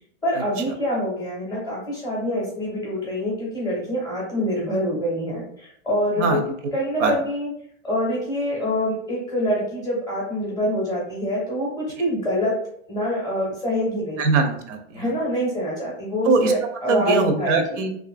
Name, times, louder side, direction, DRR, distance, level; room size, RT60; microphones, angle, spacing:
voice 1, 0.2-6.4 6.7-7.5 7.8-12.5 12.9-14.3 14.9-17.8, equal, 10° left, -4 dB, 0.5 m, -25 dB
voice 2, 14.2-15.0 16.2-16.5 16.9-18.0, right 4 dB, 70° right, 6 dB, 0.6 m, -21 dB
2.5 x 2.4 x 2.4 m, 0.68 s
supercardioid pair, 165°, 38 cm